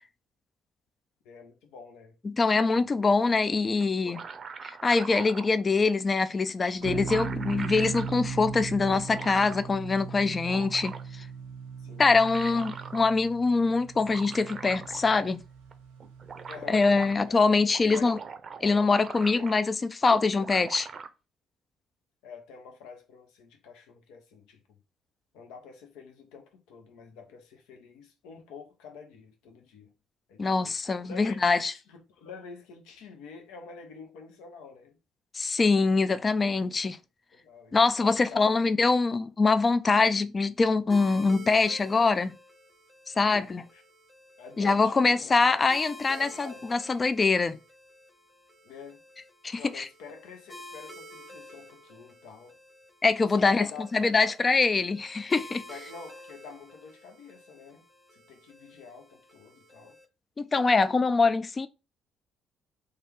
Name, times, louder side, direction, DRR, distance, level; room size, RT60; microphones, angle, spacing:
voice 1, 1.2-2.1 2.5-2.9 11.8-12.2 16.5-16.8 17.3-17.4 17.8-18.1 19.3-19.5 22.2-24.8 25.3-29.9 30.3-30.7 31.0-31.4 31.9-35.0 37.3-37.8 38.0-38.5 43.2-43.8 44.4-45.6 46.1-46.8 48.6-49.0 49.6-52.6 53.2-54.4 55.7-57.9 58.1-60.0, left 5 dB, 75° left, 0.8 m, -47 dB
voice 2, 2.2-4.2 4.6-11.2 12.0-15.4 16.7-18.2 18.6-20.9 30.4-31.7 35.3-37.0 37.7-42.3 43.2-43.6 44.6-47.6 49.4-49.9 53.0-55.6 60.4-61.7, left 4 dB, 35° left, 0.4 m, -24 dB
sound 1, 3.8-5.5 6.5-6.6 6.8-8.2 8.9-9.7 10.2-11.2 11.9-13.1 14.0-15.4 15.7-15.8 16.0-17.2 17.6-19.8 20.1-21.1, right 5 dB, 45° right, 0.6 m, -42 dB
sound 2, 6.8-17.4, right 5 dB, 90° right, 0.8 m, -39 dB
sound 3, 40.9-60.0, left 1 dB, ahead, 0.9 m, -50 dB
3.3 x 2.4 x 4.4 m
hypercardioid pair, 55°, 0 cm